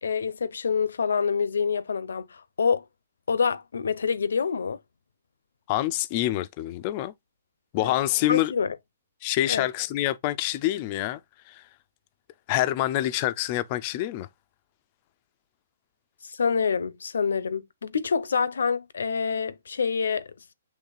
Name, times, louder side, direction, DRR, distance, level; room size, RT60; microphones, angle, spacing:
voice 1, 0.0-2.8 3.3-4.8 7.8-7.9 8.3-8.8 9.5-9.7 16.2-20.3, left 6 dB, 85° left, 0.6 m, -26 dB
voice 2, 5.7-7.1 7.7-8.5 9.2-11.2 11.5-11.6 12.5-14.3, left 15 dB, 30° left, 0.4 m, -26 dB
6.5 x 3.2 x 2.3 m
hypercardioid pair, 160°, 0 cm